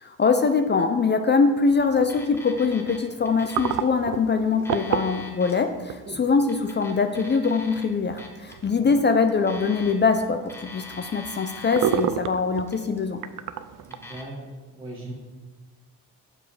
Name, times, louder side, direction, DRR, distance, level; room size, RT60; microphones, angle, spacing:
voice 1, 0.0-13.2, left 4 dB, 30° left, 7 dB, 0.5 m, -23 dB
sound 1, 1.6-14.2, right 10 dB, 60° right, 0.5 m, -34 dB
Alarm, 2.0-3.0 3.3-3.9 4.5-5.6 6.4-7.8 8.2-8.5 9.3-10.2 10.5-12.1 12.6-13.1 13.8-14.2, left 3 dB, 5° left, 1.1 m, -42 dB
voice 2, 13.8-14.4 14.7-15.1, right 1 dB, 15° right, -6 dB, 1.6 m, -39 dB
7.1 x 4.8 x 4.9 m, 1.3 s
cardioid pair, 90°, 36 cm